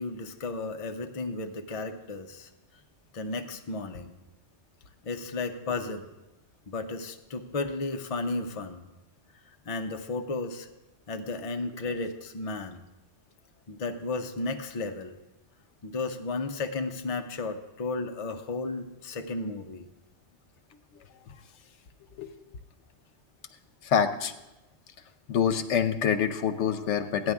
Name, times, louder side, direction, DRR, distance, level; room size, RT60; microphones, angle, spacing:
voice 1, 0.0-2.5 3.1-4.1 5.0-6.1 6.7-8.8 9.7-10.7 11.1-12.8 13.7-15.2 15.8-19.9, left 3 dB, 40° left, 5 dB, 0.6 m, -33 dB
voice 2, 23.8-24.3 25.3-27.3, left 8 dB, 85° left, 10 dB, 1.0 m, -26 dB
14.0 x 9.6 x 3.5 m, 1.0 s
omnidirectional pair, 1.2 m